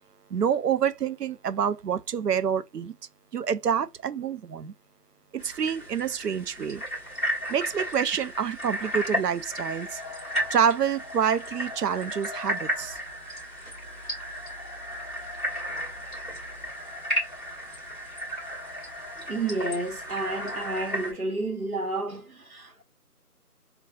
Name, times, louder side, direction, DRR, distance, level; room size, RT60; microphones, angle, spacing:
voice 1, 0.3-2.9 3.3-4.7 5.3-6.8 7.5-10.0 10.5-13.0, right 8 dB, 90° right, 0.5 m, -27 dB
sound 1, 5.4-21.1, equal, ahead, 0.9 m, -34 dB
voice 2, 19.2-22.8, right 2 dB, 70° right, 1.0 m, -31 dB
5.3 x 2.2 x 2.4 m
figure-of-eight pair, 170°, 47 cm